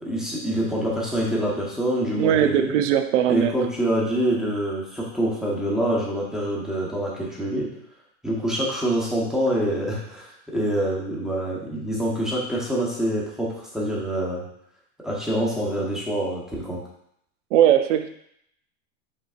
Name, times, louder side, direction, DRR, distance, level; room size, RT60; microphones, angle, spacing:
voice 1, 0.0-2.8 3.3-7.7 8.2-14.4 15.0-16.8, right 1 dB, ahead, -5 dB, 1.0 m, -26 dB
voice 2, 2.1-3.5 17.5-18.1, right 10 dB, 80° right, 9 dB, 0.6 m, -19 dB
5.3 x 3.3 x 2.4 m, 0.73 s
supercardioid pair, 125°, 36 cm